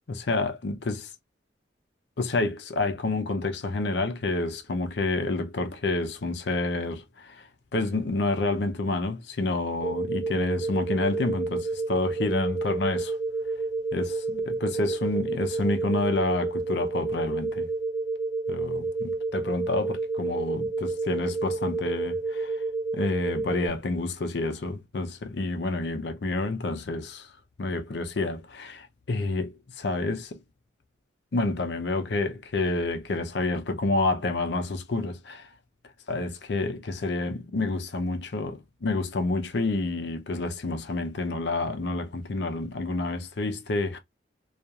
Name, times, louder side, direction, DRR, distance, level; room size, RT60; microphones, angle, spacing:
voice 1, 0.1-1.1 2.2-13.2 13.9-17.7 18.5-22.6 22.9-27.3 27.6-30.4 31.3-35.5 36.1-44.0, left 2 dB, 65° left, 0.5 m, -29 dB
sound 1, 9.8-23.7, right 3 dB, 35° right, 0.5 m, -30 dB
2.8 x 2.4 x 2.3 m
head